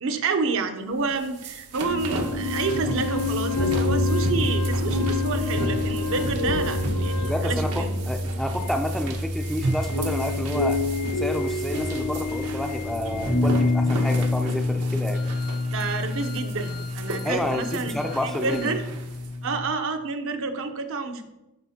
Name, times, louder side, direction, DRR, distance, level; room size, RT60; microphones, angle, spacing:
voice 1, 0.0-7.9 15.7-17.9 18.2-18.8 19.4-21.3, right 4 dB, 65° right, 7 dB, 0.7 m, -29 dB
sound 1, 0.9-19.4, right 2 dB, 80° right, 1.0 m, -36 dB
sound 2, 1.9-19.7, left 2 dB, 85° left, 1.8 m, -27 dB
Organ, 2.2-7.7 8.2-8.3 8.6-8.7 9.2-18.8 19.1-19.2, left 5 dB, 70° left, 0.8 m, -41 dB
voice 2, 7.2-10.8 11.2-15.2 17.2-18.8, left 1 dB, ahead, 4 dB, 0.4 m, -30 dB
12.0 x 4.2 x 2.8 m, 0.91 s
head